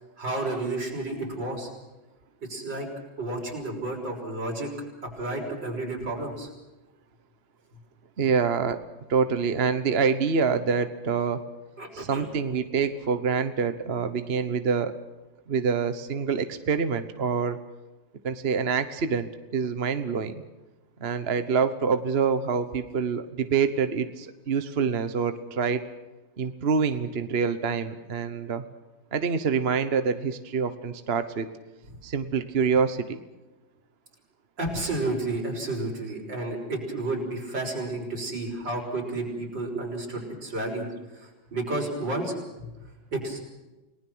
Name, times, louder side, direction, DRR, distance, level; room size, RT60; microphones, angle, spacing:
voice 1, 0.2-1.7 2.5-2.9 3.2-4.7 5.0-6.5 11.8-12.3 34.6-40.8 41.1-42.7 43.1-43.4, right 2 dB, 70° right, 0 dB, 6.6 m, -31 dB
voice 2, 8.2-8.8 9.1-11.4 11.9-14.9 15.5-17.6 18.2-20.4 21.0-25.8 26.4-28.6 29.1-31.5 32.0-33.2 39.7-39.8, right 5 dB, 40° right, 10 dB, 1.1 m, -26 dB
30.0 x 19.5 x 6.2 m, 1.1 s
omnidirectional pair, 2.0 m